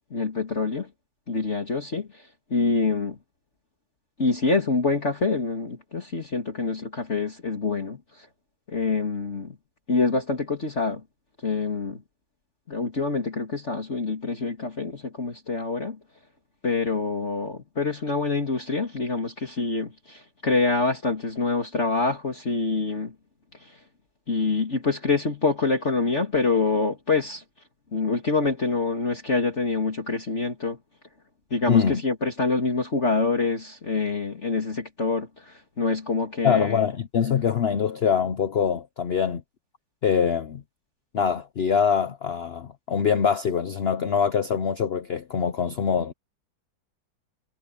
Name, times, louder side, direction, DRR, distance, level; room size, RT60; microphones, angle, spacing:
voice 1, 0.1-0.9 1.3-3.2 4.2-8.3 8.7-9.6 9.9-11.0 11.4-12.0 12.7-16.0 16.6-23.1 23.6-23.8 24.3-27.4 27.9-30.8 31.5-36.8, left 3 dB, 35° left, 2.8 m, -26 dB
voice 2, 31.7-32.0 36.4-39.4 40.0-40.6 41.1-46.1, left 7 dB, 65° left, 0.6 m, -24 dB
omnidirectional pair, 2.1 m